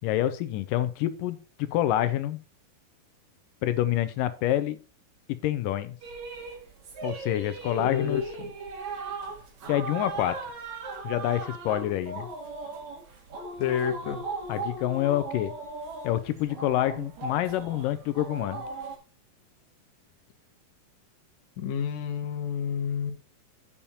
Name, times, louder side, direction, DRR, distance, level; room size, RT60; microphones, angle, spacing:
voice 1, 0.0-2.4 3.6-4.8 5.3-6.0 7.0-8.3 9.7-10.4 11.0-12.3 14.5-15.5 16.0-18.6, left 13 dB, 80° left, 13 dB, 2.1 m, -27 dB
sound 1, 6.0-19.0, right 3 dB, 55° right, 3.1 m, -38 dB
voice 2, 7.8-8.2 13.6-14.2 21.6-23.1, left 8 dB, 65° left, 3 dB, 2.1 m, -29 dB
8.7 x 7.1 x 4.2 m, 0.34 s
omnidirectional pair, 4.2 m